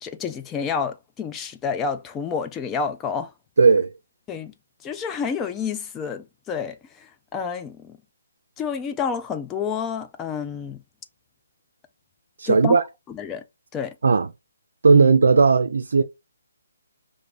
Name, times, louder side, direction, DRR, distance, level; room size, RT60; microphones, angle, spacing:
voice 1, 0.0-3.3 4.3-4.5 4.8-8.0 8.6-10.8 12.5-12.8 13.1-13.4 13.7-14.0 14.9-15.1, left 6 dB, 15° left, 0.3 m, -29 dB
voice 2, 3.6-3.9 12.4-12.8 14.0-14.3 14.8-16.0, right 4 dB, 70° right, 0.4 m, -16 dB
4.9 x 2.5 x 3.2 m
hypercardioid pair, 150°, 0 cm